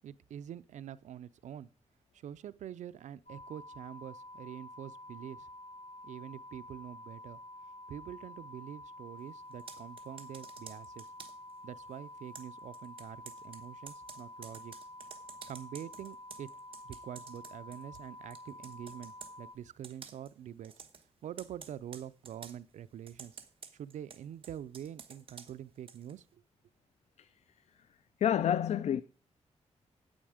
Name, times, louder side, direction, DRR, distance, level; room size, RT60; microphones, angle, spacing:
voice 1, 0.0-1.7 2.2-5.5 6.0-7.4 7.9-11.1 11.6-14.7 15.5-16.5 16.8-20.7 21.2-23.3 23.7-26.4, right 10 dB, 85° right, 0.4 m, -45 dB
sound 1, 3.3-19.5, left 1 dB, 85° left, 1.5 m, -49 dB
Computer keyboard, 9.5-11.5 12.3-18.1 18.3-19.4 19.8-20.3 20.6-21.0 21.4-22.6 23.1-26.2, right 6 dB, 50° right, 1.1 m, -51 dB
voice 2, 28.2-29.0, left 10 dB, 65° left, 0.4 m, -28 dB
8.9 x 8.7 x 4.9 m
wide cardioid pair, 135°, 12 cm